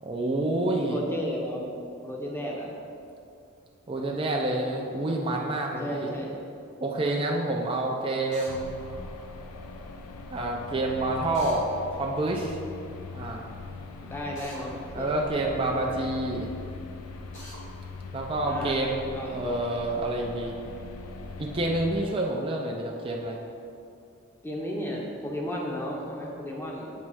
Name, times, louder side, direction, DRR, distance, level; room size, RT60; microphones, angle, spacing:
voice 1, 0.0-1.0 3.9-6.1 6.8-8.7 10.3-11.7 12.0-12.6 13.1-13.5 15.0-16.5 18.1-20.6 21.4-23.4, right 2 dB, 25° right, -1 dB, 0.4 m, -28 dB
voice 2, 0.8-1.7 2.0-2.7 5.7-6.3 14.0-15.1 18.4-19.4 24.4-26.9, equal, 10° left, -2 dB, 0.7 m, -34 dB
Drill, 8.3-8.6 11.3-11.6 14.4-14.6 17.3-17.6, left 1 dB, 55° left, 1.1 m, -45 dB
sound 1, 8.5-22.1, left 3 dB, 85° left, 0.5 m, -41 dB
7.3 x 3.2 x 4.7 m, 2.5 s
head